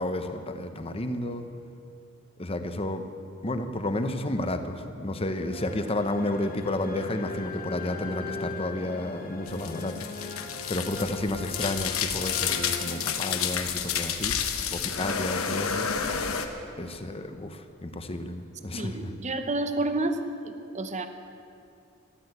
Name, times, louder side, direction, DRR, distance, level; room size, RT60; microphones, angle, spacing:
voice 1, 0.0-1.5 2.4-3.0 3.4-10.0 10.7-14.4 14.7-15.9 16.8-19.1, left 1 dB, 30° left, 8 dB, 0.9 m, -31 dB
sound 1, 5.5-13.9, left 3 dB, 45° left, 1.4 m, -40 dB
sound 2, 9.5-16.5, left 7 dB, 90° left, 1.2 m, -30 dB
voice 2, 18.7-20.2 20.4-21.1, right 2 dB, 35° right, 8 dB, 0.9 m, -29 dB
14.0 x 12.0 x 8.0 m, 2.6 s
head